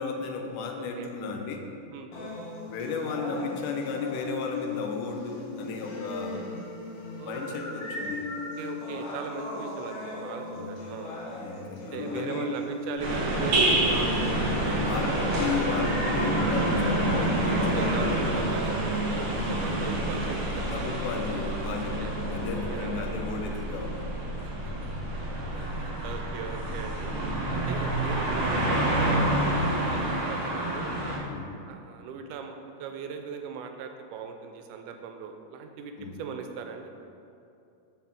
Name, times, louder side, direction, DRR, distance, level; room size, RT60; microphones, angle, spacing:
voice 1, 0.0-1.7 2.7-6.4 7.2-8.2 10.5-10.7 11.4-12.6 14.6-18.7 20.7-24.1 25.5-25.8 31.3-31.5 36.0-36.2, left 5 dB, 85° left, 3 dB, 2.2 m, -34 dB
voice 2, 1.9-2.3 7.2-8.3 8.6-11.2 11.9-14.1 14.4-14.8 16.6-17.1 17.8-20.8 21.9-23.3 24.4-24.7 25.7-27.1 27.5-31.0 31.7-36.9, right 6 dB, 85° right, 5 dB, 2.1 m, -40 dB
sound 1, 2.1-18.1, left 2 dB, 60° left, 1.6 m, -37 dB
sound 2, 13.0-28.5, equal, 40° right, 1.4 m, -37 dB
sound 3, 13.0-31.2, right 1 dB, 55° right, 1.5 m, -28 dB
7.3 x 5.9 x 3.5 m, 2.6 s
omnidirectional pair, 3.6 m